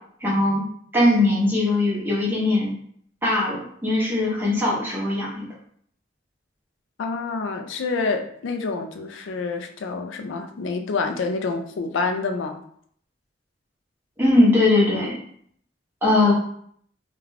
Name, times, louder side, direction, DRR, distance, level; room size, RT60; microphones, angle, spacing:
voice 1, 0.2-0.6 0.9-2.7 3.2-5.5 14.2-15.1 16.0-16.3, left 2 dB, 10° right, -5 dB, 0.7 m, -20 dB
voice 2, 7.0-12.6 16.3-16.4, left 4 dB, 80° left, 6 dB, 0.4 m, -27 dB
2.4 x 2.2 x 3.2 m, 0.64 s
head